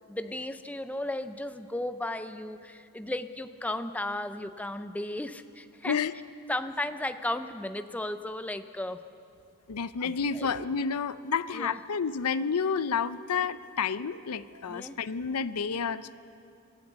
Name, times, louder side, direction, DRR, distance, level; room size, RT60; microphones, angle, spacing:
voice 1, 0.1-6.1 6.5-9.0 10.0-10.5 11.5-11.8 14.7-15.0, left 1 dB, 5° left, 10 dB, 0.5 m, -35 dB
voice 2, 9.7-16.2, left 6 dB, 90° left, 14 dB, 0.6 m, -30 dB
26.0 x 13.0 x 8.1 m, 2.6 s
head